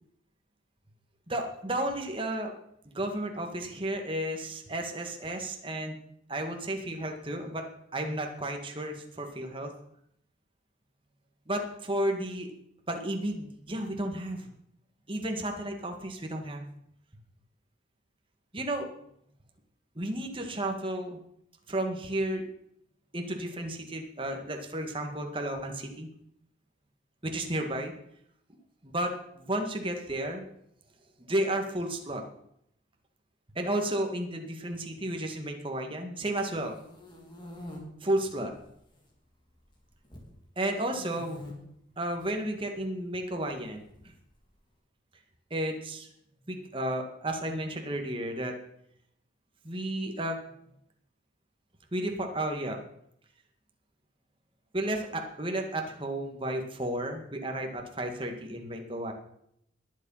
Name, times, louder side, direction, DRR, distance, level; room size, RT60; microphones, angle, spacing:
voice 1, 1.3-2.5 2.9-6.0 6.3-7.6 7.9-9.7 11.5-12.5 12.9-14.5 15.1-16.7 18.5-18.9 20.0-21.2 21.7-22.4 23.1-26.1 27.2-27.9 28.8-30.4 31.2-32.2 33.6-36.8 38.0-38.5 40.6-41.4 42.0-43.8 45.5-46.1 46.5-48.5 49.6-50.4 51.9-52.8 54.7-59.1, right 1 dB, 25° right, 3 dB, 1.9 m, -32 dB
sound 1, 36.6-37.8 38.5-39.1 39.3-40.3 40.9-41.5 42.1-42.3 43.5-44.4, left 1 dB, 25° left, 3.0 m, -46 dB
20.5 x 7.5 x 5.7 m, 0.73 s
head